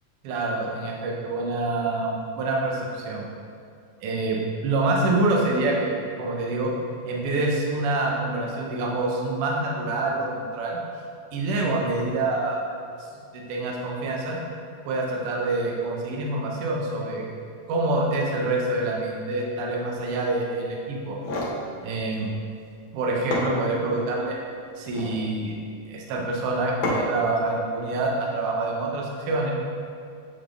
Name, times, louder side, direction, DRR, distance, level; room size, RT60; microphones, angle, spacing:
voice 1, 0.2-3.2 4.0-6.7 7.1-10.8 11.3-12.6 13.3-14.4 14.8-17.2 17.7-21.2 21.8-22.3 22.9-24.4 24.8-25.5 25.9-29.5, right 2 dB, 75° right, -2 dB, 1.3 m, -26 dB
sound 1, 21.0-21.6 22.9-23.0 23.3-24.1 24.8-25.2 26.8-27.3, left 1 dB, 65° left, 1.4 m, -29 dB
7.5 x 3.7 x 3.4 m, 2.4 s
omnidirectional pair, 3.6 m